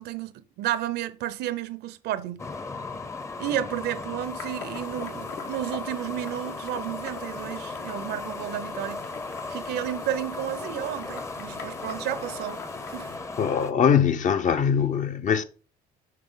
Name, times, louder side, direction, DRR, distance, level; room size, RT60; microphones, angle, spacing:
voice 1, 0.0-2.4 3.4-9.1 9.5-12.6 12.9-13.1, right 12 dB, 75° right, 0.7 m, -32 dB
sound 1, 2.4-13.7, left 3 dB, 15° left, 0.7 m, -36 dB
sound 2, 4.2-13.2, left 6 dB, 80° left, 1.8 m, -44 dB
voice 2, 13.4-15.4, left 7 dB, 50° left, 0.8 m, -22 dB
7.5 x 5.7 x 3.8 m
cardioid pair, 110°, 17 cm